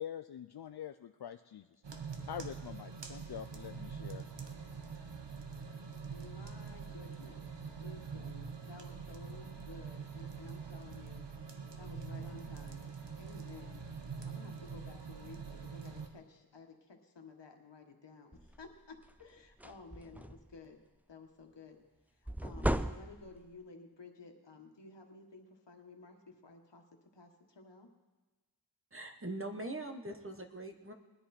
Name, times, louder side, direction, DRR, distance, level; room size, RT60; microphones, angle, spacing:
voice 1, 0.0-1.7 2.3-4.2, left 9 dB, 65° left, 8 dB, 0.5 m, -44 dB
sound 1, 1.8-16.1, right 5 dB, 80° right, 1.1 m, -45 dB
voice 2, 6.1-7.4 7.8-11.3 11.8-12.9 13.2-13.9 14.2-20.8 21.1-21.8 22.1-26.8 27.1-27.9, left 3 dB, 85° left, 3 dB, 1.5 m, -54 dB
sound 2, 18.3-18.6 19.1-19.2 19.5-20.6 22.3-23.5, right 1 dB, 5° right, 0.4 m, -36 dB
voice 3, 28.9-30.9, right 1 dB, 30° right, 5 dB, 1.3 m, -42 dB
20.5 x 10.0 x 4.3 m, 1.2 s
wide cardioid pair, 50°, 42 cm